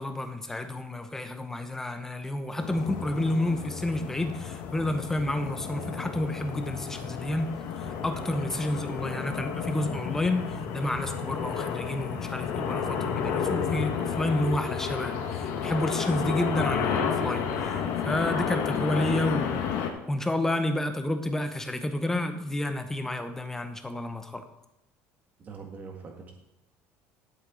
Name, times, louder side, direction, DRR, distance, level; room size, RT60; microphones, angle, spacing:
voice 1, 0.0-7.5 7.8-17.8 18.0-19.6 20.1-24.4, left 1 dB, 10° left, 8 dB, 0.8 m, -30 dB
sound 1, 2.6-19.9, left 7 dB, 70° left, 1.5 m, -31 dB
voice 2, 25.4-26.3, right 5 dB, 30° right, 2 dB, 1.9 m, -42 dB
11.5 x 8.1 x 3.9 m, 0.88 s
cardioid pair, 155°, 6 cm